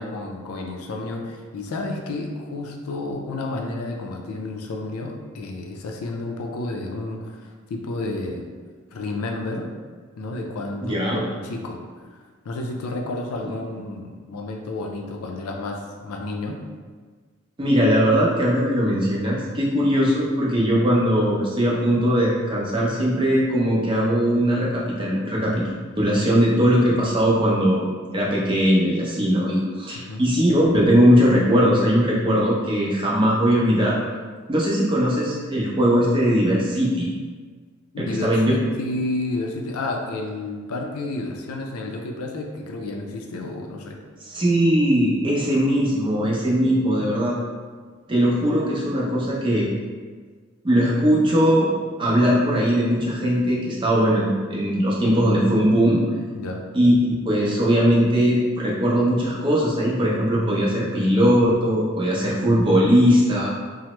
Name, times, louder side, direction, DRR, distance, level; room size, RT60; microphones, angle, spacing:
voice 1, 0.0-8.4 8.9-9.7 10.2-11.8 12.1-16.6 30.1-30.2 37.9-44.0 56.3-56.6, left 2 dB, 90° left, 2 dB, 0.4 m, -31 dB
voice 2, 10.8-11.2 17.6-25.6 26.0-27.9 28.1-34.0 34.5-37.1 38.0-38.5 44.2-47.4 48.1-49.7 50.6-51.7 52.0-56.0 56.7-56.9 57.3-63.5, equal, 25° right, -4 dB, 0.5 m, -20 dB
3.2 x 2.0 x 2.9 m, 1.5 s
head